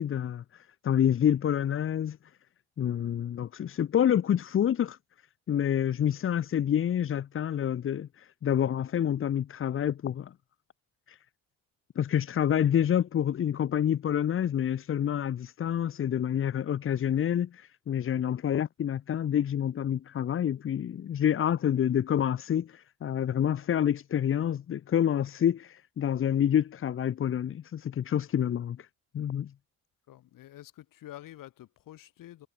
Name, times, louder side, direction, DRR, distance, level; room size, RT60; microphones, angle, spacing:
voice 1, 0.0-2.2 2.8-5.0 5.5-10.3 11.1-11.2 12.0-28.9 29.1-29.5, left 9 dB, 40° left, 0.8 m, -28 dB
voice 2, 30.1-32.5, left 14 dB, 70° left, 3.5 m, -48 dB
cardioid pair, 95°, 34 cm